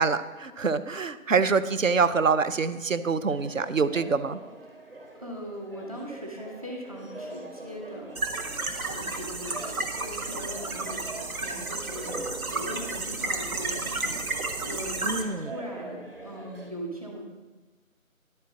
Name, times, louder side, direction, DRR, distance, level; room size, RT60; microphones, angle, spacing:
voice 1, 0.0-4.4 15.0-15.5, right 5 dB, 65° right, 12 dB, 0.7 m, -25 dB
sound 1, 3.3-16.7, right 2 dB, 45° right, 1.5 m, -44 dB
voice 2, 5.2-8.2 8.8-17.2, equal, 25° right, -1 dB, 1.3 m, -40 dB
sound 2, 8.1-15.2, right 3 dB, 85° right, 1.2 m, -32 dB
10.5 x 4.5 x 7.4 m, 1.3 s
figure-of-eight pair, 180°, 42 cm